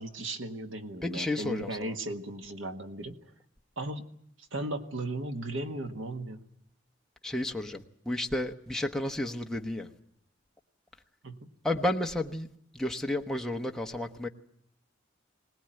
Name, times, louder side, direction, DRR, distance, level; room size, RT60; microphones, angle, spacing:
voice 1, 0.0-3.2 3.8-4.0 4.5-6.4 11.2-11.4, right 1 dB, 85° right, 1.7 m, -36 dB
voice 2, 1.0-1.9 7.2-9.9 11.6-12.5 12.7-14.3, left 1 dB, 5° left, 1.1 m, -32 dB
21.5 x 19.0 x 9.1 m
head